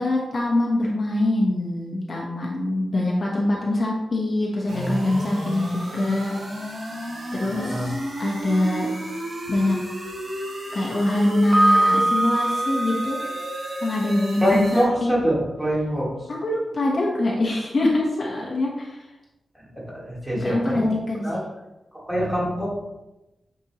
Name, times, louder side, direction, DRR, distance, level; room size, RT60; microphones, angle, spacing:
voice 1, 0.0-6.3 7.3-8.9 9.5-9.8 10.7-13.2 13.8-15.1 16.3-19.1 20.4-20.8 21.1-21.4, left 1 dB, 40° left, -3 dB, 1.2 m, -24 dB
sound 1, 4.7-14.8, right 1 dB, 80° right, 2.5 m, -32 dB
voice 2, 7.4-7.9 14.4-16.1 19.5-20.9 21.2-21.4 21.9-22.7, equal, 10° right, -6 dB, 2.5 m, -24 dB
Piano, 11.5-14.4, right 1 dB, 25° right, 0.9 m, -23 dB
8.6 x 5.3 x 3.1 m, 1.0 s
wide cardioid pair, 175°, 0 cm